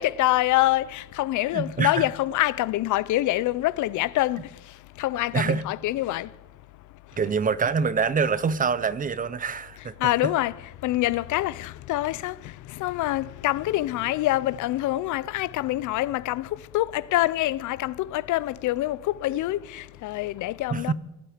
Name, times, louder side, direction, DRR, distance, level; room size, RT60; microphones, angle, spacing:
voice 1, 0.0-4.4 5.0-6.3 10.0-10.5 10.8-12.4 12.7-16.5 16.7-20.9, left 16 dB, 85° left, 0.5 m, -25 dB
voice 2, 1.5-2.1 5.3-5.6 7.2-9.9 10.2-10.3 20.7-20.9, right 5 dB, 30° right, 0.6 m, -25 dB
16.5 x 12.5 x 5.0 m
cardioid pair, 140°, 29 cm